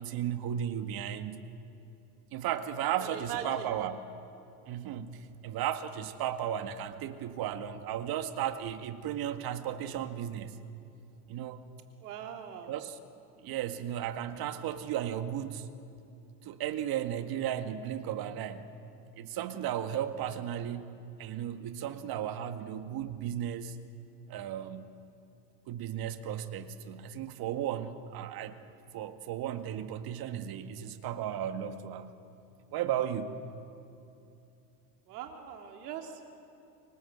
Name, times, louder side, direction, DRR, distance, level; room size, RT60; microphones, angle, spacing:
voice 1, 0.0-1.4 2.3-4.0 4.7-10.6 11.3-11.6 12.7-13.0 13.4-15.7 16.4-18.7 19.2-23.8 24.3-24.9 25.7-28.6 28.9-32.2 32.7-33.4, right 10 dB, 50° right, 8 dB, 2.0 m, -35 dB
voice 2, 3.0-3.7 12.0-12.8 35.1-36.2, right 8 dB, 80° right, 3 dB, 3.4 m, -41 dB
29.0 x 24.5 x 8.1 m, 2.8 s
supercardioid pair, 100°, 46 cm